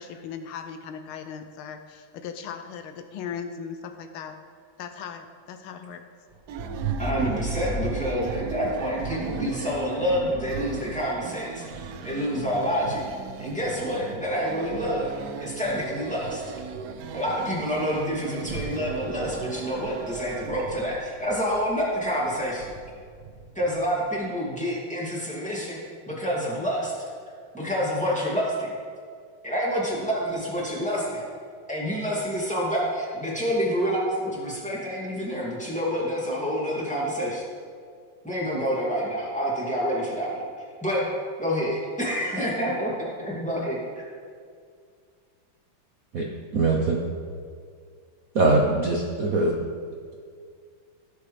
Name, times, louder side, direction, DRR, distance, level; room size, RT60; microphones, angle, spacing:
voice 1, 0.0-4.4 4.8-6.0, left 7 dB, 80° left, 7 dB, 1.5 m, -38 dB
Thunder, 6.3-23.8, right 3 dB, 35° right, 1.2 m, -38 dB
sound 1, 6.5-20.5, right 7 dB, 85° right, 0.9 m, -38 dB
voice 2, 7.0-13.0 13.4-15.1 15.4-16.4 17.1-22.7 23.5-25.8 26.1-26.9 27.5-28.7 29.4-31.2 31.7-37.4 38.2-40.4 40.8-41.0 41.4-43.8, equal, 5° left, -6 dB, 2.3 m, -28 dB
voice 3, 46.5-47.0 48.3-49.7, right 2 dB, 55° right, 0 dB, 1.0 m, -22 dB
16.5 x 6.8 x 3.4 m, 2.1 s
omnidirectional pair, 2.4 m